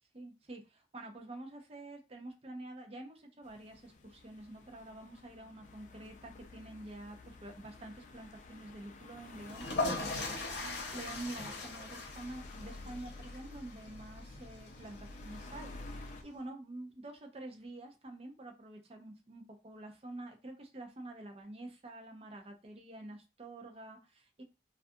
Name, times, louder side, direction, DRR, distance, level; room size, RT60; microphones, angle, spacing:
voice 1, 0.1-9.6 10.0-24.4, right 2 dB, 35° right, 3 dB, 0.5 m, -48 dB
sound 1, 3.4-16.2, left 2 dB, 45° left, 0.4 m, -51 dB
sound 2, 9.4-16.2, left 3 dB, 70° left, 0.8 m, -40 dB
2.3 x 2.3 x 2.6 m, 0.29 s
head